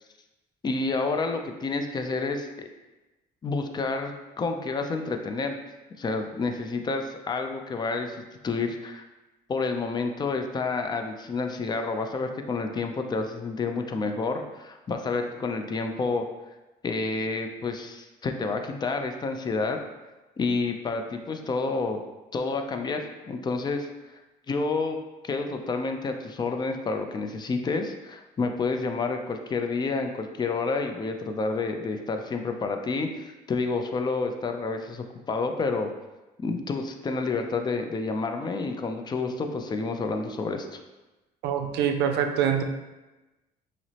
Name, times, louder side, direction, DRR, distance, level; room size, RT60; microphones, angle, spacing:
voice 1, 0.6-2.7 3.4-5.6 6.0-8.2 8.4-9.1 9.5-16.2 16.8-19.8 20.4-22.0 22.3-24.2 24.5-25.0 25.2-35.9 36.4-40.8, left 3 dB, 25° left, 5 dB, 0.4 m, -29 dB
voice 2, 41.4-42.6, right 8 dB, 85° right, 6 dB, 0.4 m, -24 dB
5.8 x 2.0 x 2.8 m, 1.1 s
cardioid pair, 110°, 17 cm